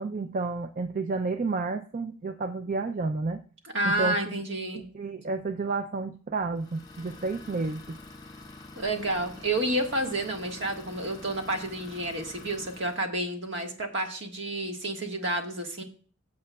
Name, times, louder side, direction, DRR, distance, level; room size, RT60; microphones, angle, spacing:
voice 1, 0.0-3.4 3.8-4.2 4.7-8.0, right 3 dB, 40° right, 9 dB, 0.4 m, -31 dB
voice 2, 3.7-4.8 8.7-15.8, right 1 dB, 60° right, 3 dB, 1.6 m, -30 dB
Idling, 6.6-13.1, left 2 dB, 20° left, 1.3 m, -47 dB
15.5 x 7.6 x 2.3 m, 0.43 s
head